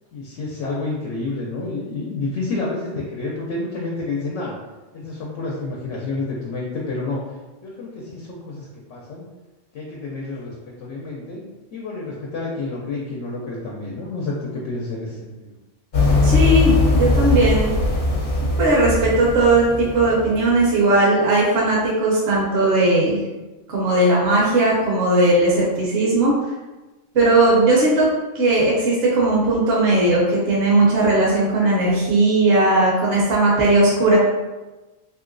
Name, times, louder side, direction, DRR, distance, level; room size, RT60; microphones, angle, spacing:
voice 1, 0.1-4.5 4.9-7.2 7.6-9.2 9.7-11.4 11.7-15.5, left 3 dB, 80° left, -3 dB, 0.9 m, -29 dB
sound 1, 15.9-20.7, left 2 dB, 60° left, 1.0 m, -20 dB
voice 2, 16.2-17.7 18.6-23.2 23.7-26.3 27.1-28.1 28.3-34.2, right 2 dB, 60° right, -5 dB, 0.9 m, -17 dB
2.9 x 2.7 x 2.5 m, 1.1 s
omnidirectional pair, 1.2 m